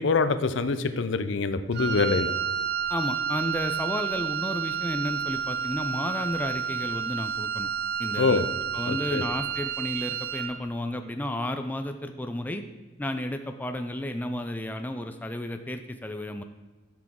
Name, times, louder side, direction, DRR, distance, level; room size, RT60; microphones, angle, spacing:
voice 1, 0.0-2.3 8.2-8.5 8.9-9.2, left 4 dB, 65° left, 10 dB, 0.6 m, -25 dB
Wind instrument woodwind instrument, 1.7-10.6, right 7 dB, 50° right, 0.6 m, -30 dB
voice 2, 2.9-7.7 8.0-8.4 8.7-12.6 13.0-16.4, left 1 dB, 10° left, 7 dB, 0.4 m, -32 dB
13.0 x 6.1 x 3.7 m, 1.2 s
head